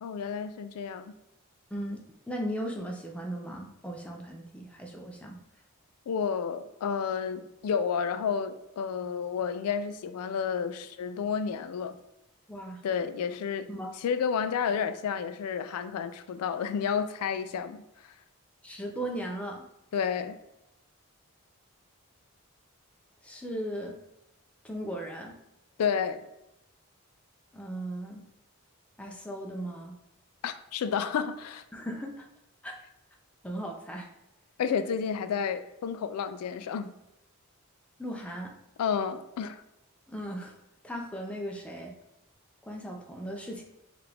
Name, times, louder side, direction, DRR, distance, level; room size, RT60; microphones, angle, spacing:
voice 1, 0.0-1.1 6.1-12.0 12.8-13.7 14.0-17.8 19.9-20.4 25.8-26.2 30.4-31.6 34.6-36.9 38.8-39.6, left 7 dB, 90° left, 11 dB, 0.3 m, -31 dB
voice 2, 1.7-2.0 2.3-5.4 12.5-12.8 13.7-13.9 18.6-19.6 23.2-24.0 24.6-25.3 27.5-28.2 29.0-29.9 31.7-32.2 32.6-32.7 33.4-34.1 38.0-38.5 40.1-40.5 40.8-41.9 42.6-43.6, equal, 5° left, 1 dB, 0.4 m, -37 dB
4.7 x 2.5 x 3.3 m, 0.88 s
head